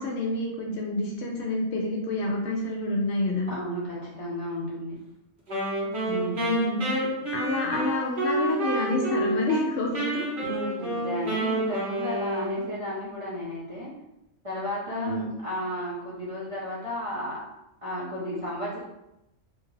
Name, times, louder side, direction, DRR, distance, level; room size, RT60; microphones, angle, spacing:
voice 1, 0.0-3.5 6.4-10.2 14.9-15.3, left 2 dB, 65° left, -1 dB, 0.8 m, -28 dB
voice 2, 3.5-5.0 6.1-6.5 10.4-13.9 14.4-17.4 17.8-18.8, equal, 35° right, -8 dB, 0.6 m, -33 dB
Wind instrument woodwind instrument, 5.5-9.7 9.9-12.9, right 1 dB, 60° right, 1.1 m, -29 dB
2.8 x 2.4 x 3.1 m, 0.89 s
omnidirectional pair, 1.3 m